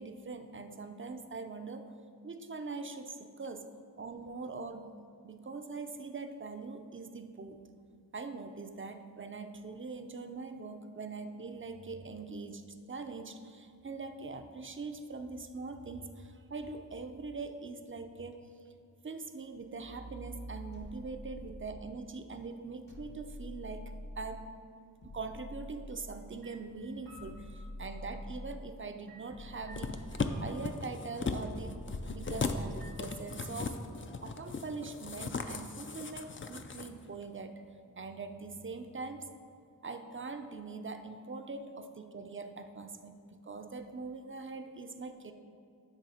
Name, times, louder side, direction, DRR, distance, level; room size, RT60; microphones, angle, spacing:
voice 1, 0.0-1.9 2.2-3.7 4.0-4.9 5.2-7.6 8.1-18.4 19.0-24.5 25.1-30.0 30.4-31.8 32.1-33.8 34.2-37.6 38.0-39.3 39.8-43.1 43.4-45.3, right 3 dB, 35° right, 7 dB, 0.5 m, -42 dB
sound 1, 20.7-22.0 22.9-24.5 25.0-26.4 27.1-28.8 29.3-30.7 31.4-33.0, left 1 dB, 65° left, 1.5 m, -46 dB
sound 2, 26.0-26.2 26.4-28.3 29.1-31.1 32.2-32.4 32.8-34.1, equal, 85° right, 1.8 m, -57 dB
sound 3, 29.7-36.9 37.2-37.3, left 4 dB, 35° left, 0.4 m, -37 dB
9.1 x 3.4 x 5.6 m, 2.4 s
wide cardioid pair, 50°, 36 cm